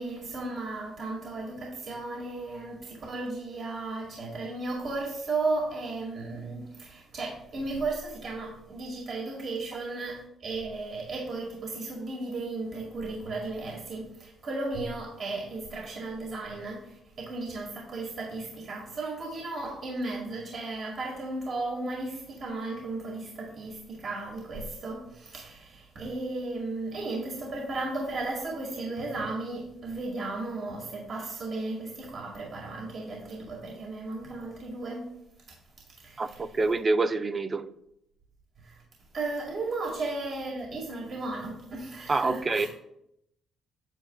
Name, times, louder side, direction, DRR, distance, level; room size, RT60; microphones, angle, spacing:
voice 1, 0.0-35.1 36.0-36.4 38.6-38.8 39.1-42.7, right 2 dB, 55° right, -2 dB, 2.0 m, -35 dB
voice 2, 36.2-37.7 42.1-42.7, right 3 dB, 30° right, 11 dB, 0.5 m, -26 dB
8.9 x 7.5 x 2.3 m, 0.79 s
cardioid pair, 80°, 0 cm